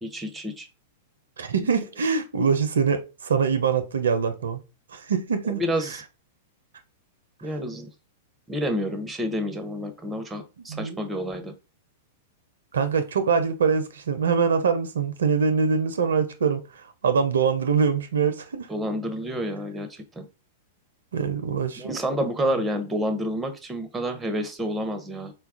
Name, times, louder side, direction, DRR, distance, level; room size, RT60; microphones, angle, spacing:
voice 1, 0.0-0.7 5.5-6.0 7.4-7.9 8.5-11.5 18.7-20.3 21.8-25.3, equal, 10° right, 0.6 m, -29 dB
voice 2, 1.4-4.6 4.9-6.0 10.7-11.0 12.7-18.7 21.1-22.0, right 5 dB, 80° right, 0.4 m, -24 dB
4.0 x 2.2 x 2.4 m
hypercardioid pair, 105°, 0 cm